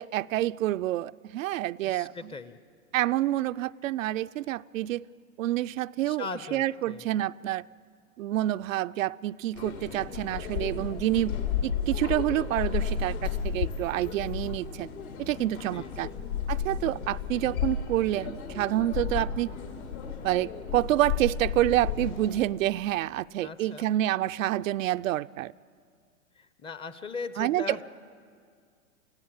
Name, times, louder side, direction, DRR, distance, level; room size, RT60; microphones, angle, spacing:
voice 1, 0.0-2.1 2.9-5.0 5.4-7.6 8.2-14.9 15.2-16.1 16.5-19.5 20.2-25.5 27.4-27.8, right 14 dB, 65° right, 12 dB, 0.5 m, -28 dB
voice 2, 1.8-2.6 6.1-7.2 15.7-16.3 23.4-23.9 26.4-27.8, left 4 dB, 15° left, 13 dB, 0.6 m, -39 dB
sound 1, 9.5-22.5, left 7 dB, 80° left, 4.0 m, -33 dB
28.5 x 16.5 x 8.7 m, 2.1 s
hypercardioid pair, 120°, 42 cm